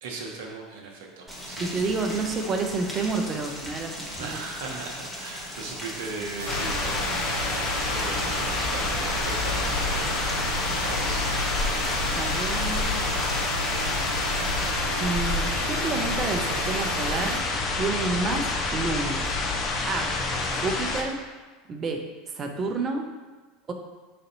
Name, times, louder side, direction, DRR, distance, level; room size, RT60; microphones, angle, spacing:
voice 1, 0.0-2.3 4.2-10.1 10.8-11.3 13.0-13.1, right 3 dB, 65° right, 0 dB, 0.8 m, -39 dB
Rain, 1.3-14.7, equal, 5° left, 1.0 m, -38 dB
voice 2, 1.6-4.3 4.6-4.8 12.1-13.0 15.0-17.4 17.8-19.4 19.9-20.1 20.5-21.2 21.7-22.0 22.3-23.0 23.7-23.8, right 3 dB, 35° right, 4 dB, 0.6 m, -29 dB
sound 1, 6.4-17.4, right 3 dB, 85° right, 0.3 m, -34 dB
sound 2, 6.5-21.0, left 3 dB, 35° left, 0.7 m, -28 dB
4.2 x 2.6 x 4.0 m, 1.3 s
hypercardioid pair, 80°, 0 cm